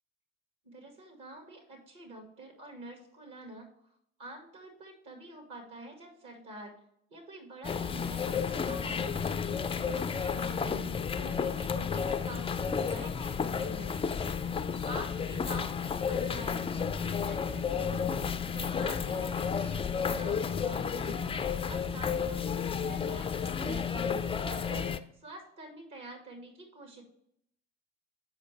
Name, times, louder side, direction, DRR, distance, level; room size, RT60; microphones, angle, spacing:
voice 1, 0.6-3.7 4.2-6.7 7.1-9.1 9.8-10.9 11.2-13.9 14.9-18.1 18.5-27.0, right 1 dB, 55° right, 3 dB, 2.1 m, -47 dB
sound 1, 7.6-25.0, left 6 dB, 15° left, 0.4 m, -32 dB
7.9 x 5.0 x 3.3 m, 0.72 s
hypercardioid pair, 65°, 37 cm